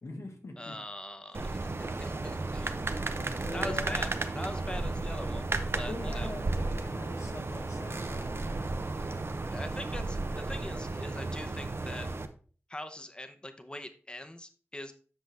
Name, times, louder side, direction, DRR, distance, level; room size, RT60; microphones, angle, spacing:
voice 1, 0.0-0.8 2.2-2.4 3.2-4.0 5.9-8.6, left 2 dB, 85° left, 3 dB, 1.5 m, -42 dB
voice 2, 0.6-2.7 3.5-6.3 9.3-12.1 12.7-14.9, left 1 dB, 20° left, 8 dB, 0.9 m, -42 dB
sound 1, 1.3-12.3, right 2 dB, 55° right, 0.7 m, -34 dB
7.9 x 6.0 x 3.4 m, 0.39 s
wide cardioid pair, 60°, 5 cm